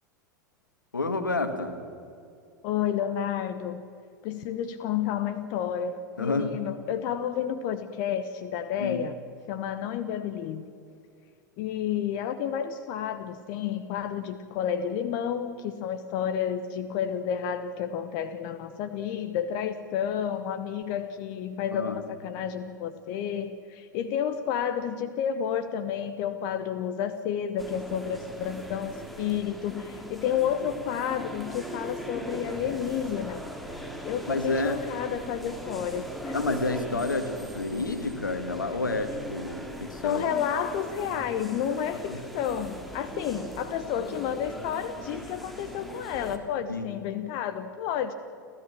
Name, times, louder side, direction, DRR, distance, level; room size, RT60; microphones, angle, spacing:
voice 1, 0.9-1.8 6.2-6.5 8.8-9.0 21.7-22.0 34.3-34.8 36.3-40.2 42.1-42.2 46.7-46.9, left 2 dB, 85° left, 8 dB, 1.9 m, -29 dB
voice 2, 2.6-3.8 4.2-9.2 9.5-10.7 11.6-33.5 34.0-36.3 40.0-48.1, left 8 dB, 50° left, 10 dB, 1.1 m, -31 dB
sound 1, 27.6-46.4, equal, ahead, 2.5 m, -40 dB
29.5 x 13.5 x 7.4 m, 2.4 s
figure-of-eight pair, 85°, 10 cm